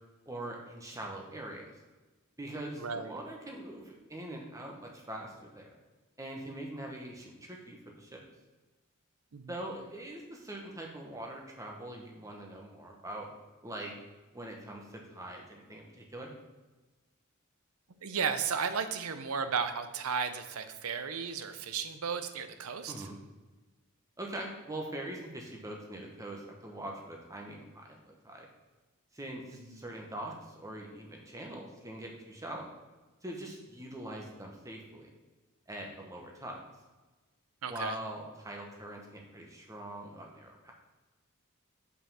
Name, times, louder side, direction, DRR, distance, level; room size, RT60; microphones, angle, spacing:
voice 1, 0.3-1.7 2.4-5.8 6.2-8.2 9.5-13.3 13.6-13.9 14.3-16.3 22.9-23.2 24.2-28.5 29.1-32.7 33.2-35.1 35.7-36.6 37.7-40.7, right 1 dB, 15° right, 0 dB, 1.1 m, -43 dB
voice 2, 2.8-3.1 9.3-9.5 18.0-23.1 29.7-29.8 37.6-38.0, right 6 dB, 80° right, 10 dB, 0.6 m, -34 dB
5.5 x 5.4 x 5.6 m, 1.2 s
head